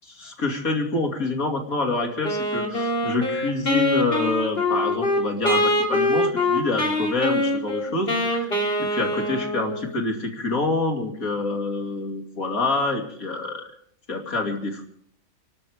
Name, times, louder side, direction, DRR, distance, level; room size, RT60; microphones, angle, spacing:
voice 1, 0.1-8.5 8.9-13.6 14.1-14.9, left 3 dB, 70° left, 2 dB, 3.1 m, -27 dB
Wind instrument woodwind instrument, 2.2-9.9, left 1 dB, 40° left, 3.1 m, -24 dB
30.0 x 12.0 x 3.6 m, 0.63 s
omnidirectional pair, 1.5 m